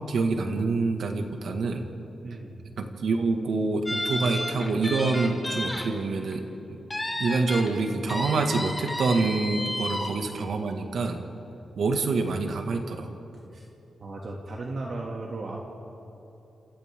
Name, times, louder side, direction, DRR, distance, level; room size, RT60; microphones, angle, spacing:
voice 1, 0.1-1.9 2.8-6.8 7.2-11.2 11.8-13.1, right 3 dB, 75° right, 4 dB, 2.1 m, -26 dB
voice 2, 2.2-2.6 13.5-13.6 14.0-15.6, right 2 dB, 55° right, -2 dB, 2.6 m, -35 dB
sound 1, 3.9-5.8 6.2-6.3 6.9-7.7 8.1-10.1, left 1 dB, 15° left, 4.5 m, -31 dB
28.0 x 27.5 x 3.8 m, 3.0 s
cardioid pair, 80°, 0 cm